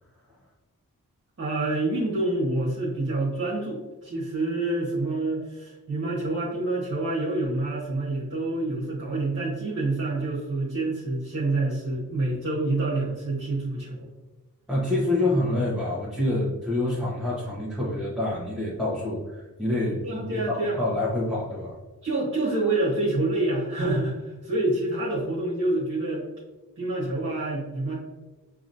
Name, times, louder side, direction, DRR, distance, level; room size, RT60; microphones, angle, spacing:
voice 1, 1.4-14.1 20.0-20.8 22.0-26.2 26.8-27.9, right 2 dB, 45° right, -6 dB, 1.5 m, -27 dB
voice 2, 14.7-21.7, left 1 dB, ahead, -8 dB, 1.3 m, -27 dB
4.7 x 3.0 x 2.7 m, 1.1 s
cardioid pair, 45°, 35 cm